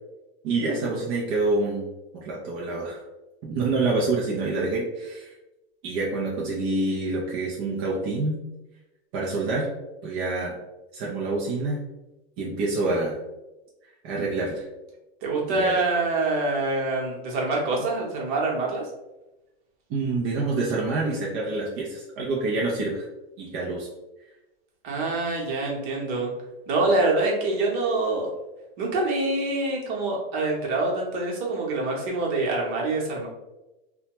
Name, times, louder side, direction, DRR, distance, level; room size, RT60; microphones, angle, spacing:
voice 1, 0.4-1.9 2.1-3.0 3.4-5.3 5.8-8.4 9.1-9.7 10.0-10.5 10.9-11.8 12.4-13.2 14.0-14.7 15.5-15.8 19.9-23.1 23.4-23.9, right 3 dB, 30° right, -4 dB, 0.4 m, -27 dB
voice 2, 15.2-18.8 24.8-26.3 26.7-28.3 28.8-33.3, right 2 dB, 50° right, -2 dB, 1.0 m, -25 dB
2.7 x 2.2 x 2.9 m, 1.0 s
supercardioid pair, 145°, 31 cm